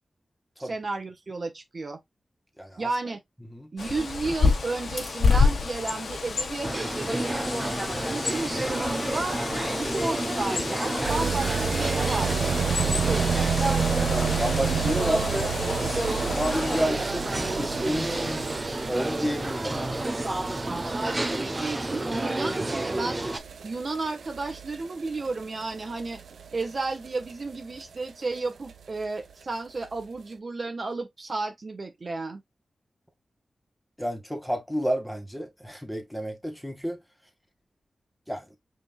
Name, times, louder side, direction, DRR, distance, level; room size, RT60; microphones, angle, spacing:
voice 1, 0.6-2.0 2.8-3.2 3.7-7.3 8.1-9.4 9.7-12.6 20.6-23.2 23.6-26.2 26.5-32.4, right 3 dB, 55° right, 1.3 m, -32 dB
voice 2, 2.6-2.9 3.5-3.7 13.9-15.5 16.4-20.0 22.8-23.1 34.0-37.0 38.3-38.5, equal, 5° left, 1.9 m, -31 dB
Bird, 3.8-16.9, left 4 dB, 75° left, 1.1 m, -29 dB
sound 1, 6.6-23.4, right 2 dB, 30° right, 1.0 m, -30 dB
sound 2, 11.0-27.8 28.1-28.2 28.4-28.5 28.7-28.8 29.0-29.1 29.8-29.9, right 7 dB, 90° right, 0.6 m, -31 dB
5.0 x 3.7 x 2.3 m
cardioid pair, 45°, 0 cm